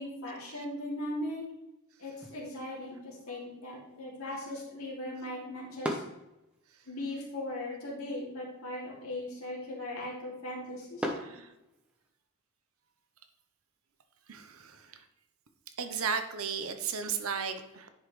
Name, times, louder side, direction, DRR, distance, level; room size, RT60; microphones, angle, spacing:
voice 1, 0.0-1.4 2.0-6.0 6.9-11.3, left 1 dB, 85° left, -4 dB, 2.7 m, -39 dB
sound 1, 2.1-12.1, equal, 5° right, 0.8 m, -44 dB
voice 2, 11.1-11.5 14.3-15.0 15.8-17.9, right 6 dB, 75° right, 8 dB, 0.8 m, -35 dB
10.0 x 5.4 x 3.2 m, 0.92 s
head